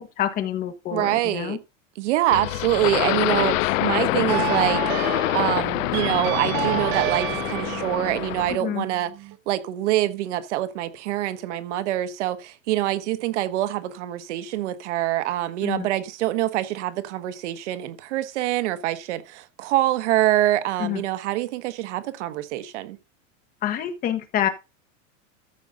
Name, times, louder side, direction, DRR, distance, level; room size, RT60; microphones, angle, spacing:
voice 1, 0.0-1.6 8.6-8.9 15.6-15.9 20.8-21.0 23.6-24.5, left 10 dB, 25° left, 1.4 m, -27 dB
voice 2, 0.9-1.6 2.0-5.1 5.3-9.1 9.5-23.0, right 14 dB, 65° right, 1.2 m, -25 dB
sound 1, 2.3-8.6, left 18 dB, 85° left, 0.6 m, -25 dB
sound 2, 4.3-9.4, right 15 dB, 30° right, 0.6 m, -30 dB
14.0 x 5.3 x 3.8 m
supercardioid pair, 165°, 38 cm